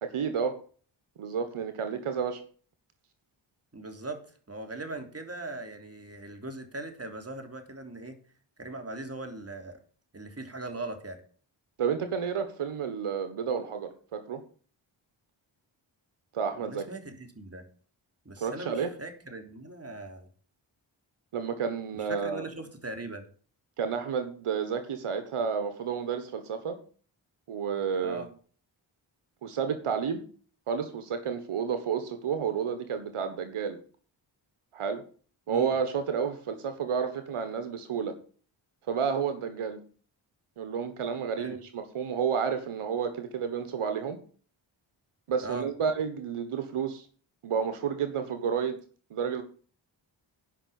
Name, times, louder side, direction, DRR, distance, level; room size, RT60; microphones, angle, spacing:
voice 1, 0.0-0.6 1.2-2.4 11.8-14.4 16.3-16.9 18.4-18.9 21.3-22.5 23.8-26.8 27.5-28.2 29.4-30.2 30.7-33.8 34.7-35.0 35.5-38.1 38.9-39.8 40.6-44.2 45.3-47.1 47.4-48.8 49.1-49.4, right 6 dB, 85° right, 8 dB, 1.4 m, -31 dB
voice 2, 3.7-8.2 8.6-9.8 10.1-11.2 16.6-17.6 18.2-20.3 22.0-23.2 28.0-28.3 35.5-35.7 41.4-41.6 45.4-45.7, right 2 dB, 30° right, 5 dB, 3.3 m, -40 dB
9.9 x 5.8 x 8.6 m, 0.42 s
cardioid pair, 45°, 49 cm